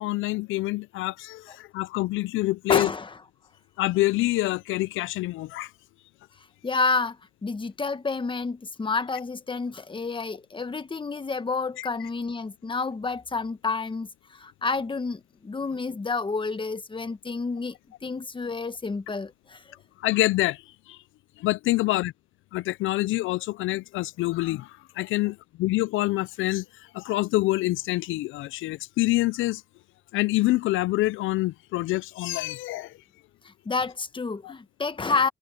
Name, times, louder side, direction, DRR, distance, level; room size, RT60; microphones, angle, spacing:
voice 1, 0.0-2.9 3.8-5.7 11.8-11.9 20.0-20.6 20.9-21.0 21.4-22.1 22.5-24.7 25.0-26.6 26.9-29.6 30.1-32.9 34.4-34.5, left 18 dB, 85° left, 0.4 m, -26 dB
voice 2, 2.7-3.1 6.6-17.8 18.0-19.6 33.4-35.3, left 4 dB, 25° left, 1.4 m, -29 dB
cardioid pair, 90°, 20 cm